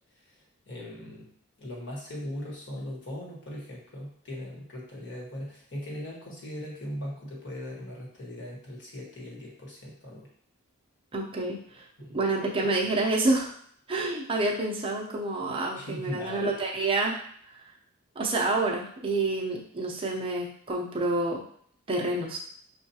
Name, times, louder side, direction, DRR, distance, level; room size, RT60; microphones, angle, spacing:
voice 1, 0.1-1.3 1.6-10.3 12.0-12.2 15.7-16.6, equal, 55° left, -3 dB, 1.3 m, -39 dB
voice 2, 11.1-11.8 12.1-13.5 13.9-17.2 17.5-17.6 18.2-21.4 21.9-22.4, right 2 dB, 25° right, -2 dB, 0.6 m, -28 dB
5.5 x 2.3 x 2.8 m, 0.62 s
head